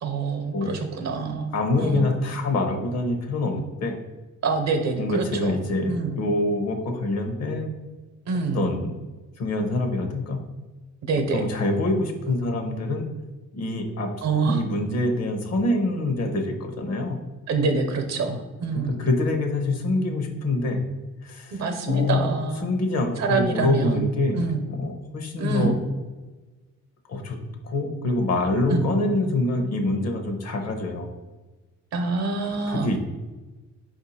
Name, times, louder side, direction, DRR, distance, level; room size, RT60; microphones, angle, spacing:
voice 1, 0.0-1.5 1.8-2.1 4.4-5.6 5.9-6.2 8.3-8.7 11.1-11.5 14.2-14.6 17.5-19.0 21.5-22.7 23.2-24.1 24.3-24.6 25.4-25.8 28.7-28.8 31.9-32.9, right 4 dB, 65° right, 6 dB, 0.8 m, -26 dB
voice 2, 1.5-4.0 5.0-7.7 8.5-8.9 9.4-10.4 11.3-13.1 13.5-14.1 14.4-17.2 19.0-20.8 21.2-21.5 21.9-22.2 22.6-25.7 27.1-27.4 27.6-31.1 32.7-33.0, left 2 dB, 60° left, 5 dB, 0.8 m, -25 dB
4.8 x 2.6 x 4.1 m, 1.2 s
cardioid pair, 135°, 29 cm